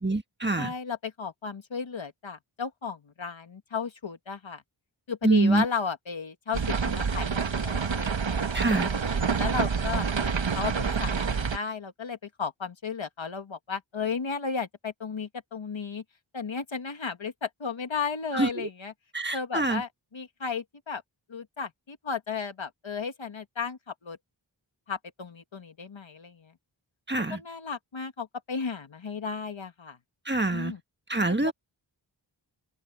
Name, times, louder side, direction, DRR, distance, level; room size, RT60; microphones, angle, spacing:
voice 1, 0.0-0.7 5.2-5.6 8.5-8.9 18.3-18.7 19.1-19.8 27.1-27.4 30.2-30.7 31.1-31.5, right 2 dB, 25° right, 1.6 m, -25 dB
voice 2, 0.6-4.6 5.1-9.0 9.4-11.2 11.5-16.0 16.3-18.9 19.3-21.0 21.3-24.2 24.9-26.5 27.3-30.0 30.5-30.8 31.4-31.5, left 5 dB, 80° left, 1.7 m, -34 dB
sound 1, 6.5-11.6, right 5 dB, 75° right, 1.3 m, -27 dB
open air
wide cardioid pair, 40°, 46 cm